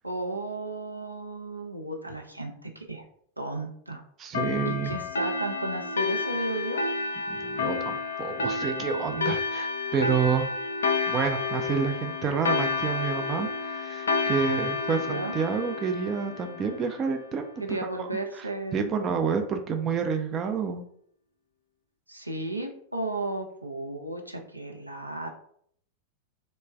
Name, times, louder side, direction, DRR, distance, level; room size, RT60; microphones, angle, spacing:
voice 1, 0.0-3.0 3.4-4.0 4.6-6.8 15.1-15.3 17.6-18.9 22.1-25.3, right 2 dB, 85° right, 2 dB, 0.5 m, -34 dB
voice 2, 4.2-5.0 7.3-10.5 11.1-18.1 18.3-20.8, right 6 dB, 30° right, 5 dB, 0.4 m, -29 dB
sound 1, 4.3-17.4, left 4 dB, 65° left, 0.4 m, -30 dB
3.1 x 2.1 x 3.4 m, 0.64 s
figure-of-eight pair, 90°, 0 cm